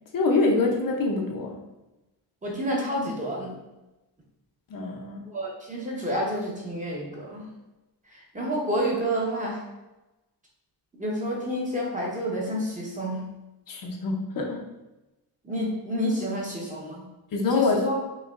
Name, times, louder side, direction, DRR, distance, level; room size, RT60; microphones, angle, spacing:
voice 1, 0.1-1.6 4.7-5.2 8.4-8.5 13.7-14.6 17.3-17.8, left 3 dB, 55° left, 1 dB, 0.6 m, -25 dB
voice 2, 2.4-3.5 5.3-7.4 8.1-9.6 11.0-13.3 15.4-17.1 17.4-18.0, equal, 20° right, -3 dB, 0.8 m, -29 dB
5.3 x 2.9 x 2.4 m, 1.0 s
wide cardioid pair, 180°, 40 cm